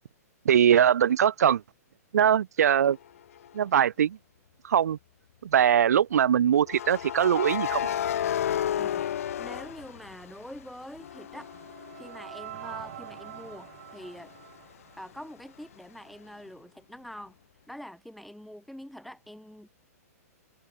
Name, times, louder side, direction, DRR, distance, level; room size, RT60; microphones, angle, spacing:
voice 1, 0.4-1.6 2.1-3.0 3.5-4.2 4.6-5.0 5.4-7.9, right 9 dB, 75° right, 0.8 m, -22 dB
sound 1, 3.4-3.6 6.7-10.6 11.0-14.5, left 10 dB, 60° left, 1.2 m, -33 dB
voice 2, 9.4-11.5 12.0-14.3 15.0-17.4 17.7-19.7, equal, ahead, 0.7 m, -45 dB
sound 2, 10.6-15.8, right 14 dB, 40° right, 5.6 m, -46 dB
hypercardioid pair, 175°, 9 cm